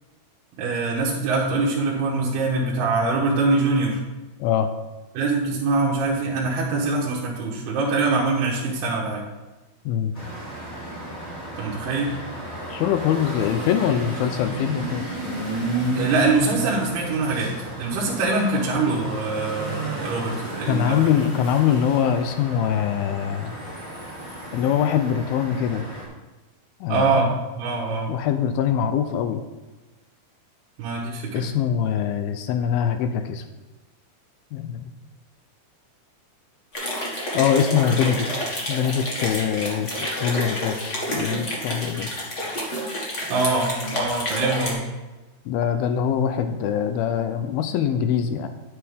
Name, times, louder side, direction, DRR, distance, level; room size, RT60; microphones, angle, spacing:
voice 1, 0.6-4.0 5.1-9.3 11.6-12.2 15.9-21.0 26.9-28.1 30.8-31.5 43.3-44.8, right 3 dB, 80° right, -5 dB, 3.3 m, -24 dB
sound 1, 10.1-26.0, right 1 dB, 20° left, 2.3 m, -32 dB
voice 2, 12.7-15.1 20.7-23.5 24.5-25.9 26.8-27.2 28.1-29.4 31.3-33.4 34.5-34.9 37.3-38.3 38.7-39.9 40.2-42.3 45.5-48.5, left 8 dB, 80° left, 8 dB, 2.3 m, -23 dB
sound 2, 36.7-44.7, equal, 40° left, 1.0 m, -29 dB
9.8 x 8.7 x 3.5 m, 1.2 s
omnidirectional pair, 4.5 m